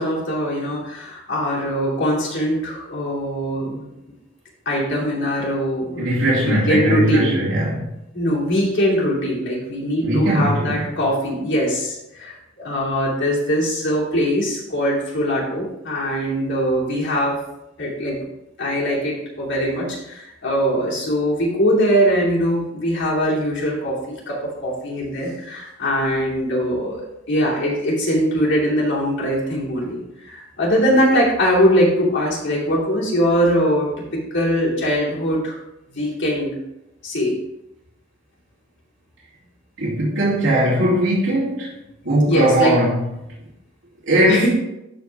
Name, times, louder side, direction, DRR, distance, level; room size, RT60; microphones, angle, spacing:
voice 1, 0.0-3.9 4.6-6.0 6.4-7.3 8.1-17.4 17.8-18.2 18.6-24.0 24.3-35.6 35.9-36.5 37.0-37.4 42.3-42.7 44.3-44.5, equal, 60° left, -5 dB, 2.8 m, -21 dB
voice 2, 6.0-8.0 10.0-10.8 39.8-41.7 42.0-43.0 44.1-44.5, right 1 dB, 75° right, -9 dB, 3.0 m, -19 dB
13.0 x 4.4 x 3.5 m, 0.89 s
head